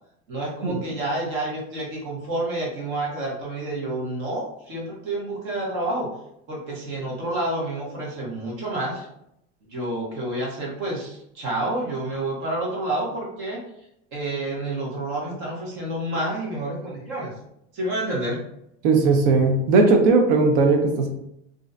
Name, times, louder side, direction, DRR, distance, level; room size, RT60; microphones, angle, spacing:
voice 1, 0.3-6.1 6.5-9.1 9.7-13.6 14.1-17.3 17.7-18.4, right 1 dB, 40° right, -4 dB, 0.9 m, -29 dB
voice 2, 18.8-21.1, right 3 dB, 55° right, 4 dB, 0.5 m, -18 dB
2.4 x 2.1 x 2.4 m, 0.77 s
supercardioid pair, 170°, 32 cm